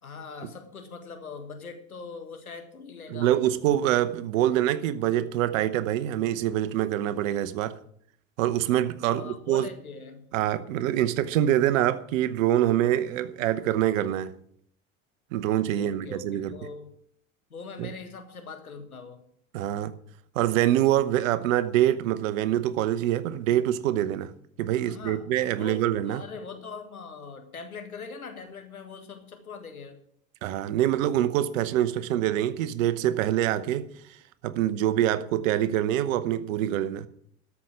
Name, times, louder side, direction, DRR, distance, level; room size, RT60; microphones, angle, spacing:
voice 1, 0.0-3.5 9.0-10.3 15.7-16.9 17.5-19.2 24.8-25.2 25.5-30.0, left 5 dB, 85° left, 1.8 m, -42 dB
voice 2, 3.1-7.8 8.4-9.7 10.3-14.3 15.3-16.5 17.8-17.9 19.5-19.9 20.3-24.3 24.6-26.2 30.4-33.9 34.4-37.1, right 12 dB, 65° right, 1.0 m, -25 dB
13.5 x 5.9 x 8.5 m
figure-of-eight pair, 70°, 42 cm